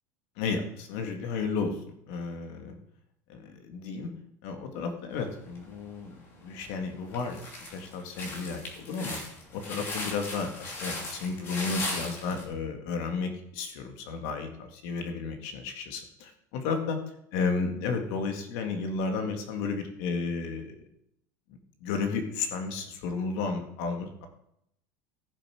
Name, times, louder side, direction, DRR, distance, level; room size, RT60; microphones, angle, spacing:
voice 1, 0.4-1.7 2.1-2.8 3.3-4.1 4.4-6.1 6.4-7.4 7.7-9.2 9.5-17.0 17.3-20.8 21.8-24.3, left 4 dB, 60° left, 5 dB, 2.0 m, -33 dB
sound 1, 5.5-6.1 6.6-6.7 7.1-12.4, left 2 dB, 25° left, 2.8 m, -37 dB
15.5 x 7.5 x 4.9 m, 0.76 s
cardioid pair, 170°, 9 cm